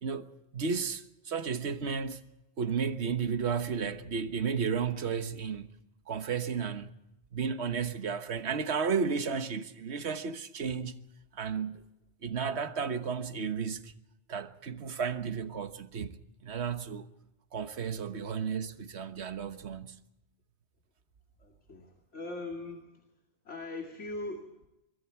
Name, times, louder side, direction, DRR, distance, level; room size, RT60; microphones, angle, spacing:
voice 1, 0.5-2.2 2.6-5.7 6.1-6.9 7.3-11.0 11.3-11.8 12.2-13.9 14.3-17.1 17.5-20.0, right 6 dB, 70° right, 1.5 m, -33 dB
voice 2, 21.4-22.9 23.4-24.7, left 2 dB, 90° left, 2.7 m, -40 dB
25.5 x 23.0 x 4.6 m
omnidirectional pair, 1.2 m